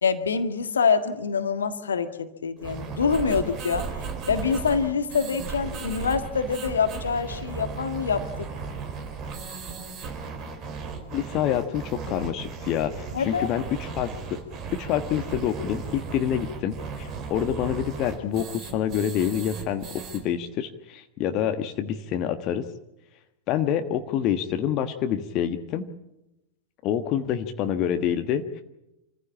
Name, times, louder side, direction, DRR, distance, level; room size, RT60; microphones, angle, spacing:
voice 1, 0.0-3.9 4.3-8.3 13.1-13.5, left 5 dB, 70° left, 9 dB, 1.7 m, -25 dB
sound 1, 2.6-20.2, right 5 dB, 35° right, 4.3 m, -36 dB
voice 2, 11.1-14.4 14.7-22.7 23.5-25.8 26.8-28.6, left 9 dB, 40° left, 8 dB, 1.4 m, -27 dB
27.0 x 15.0 x 8.5 m, 0.90 s
figure-of-eight pair, 90°, 0 cm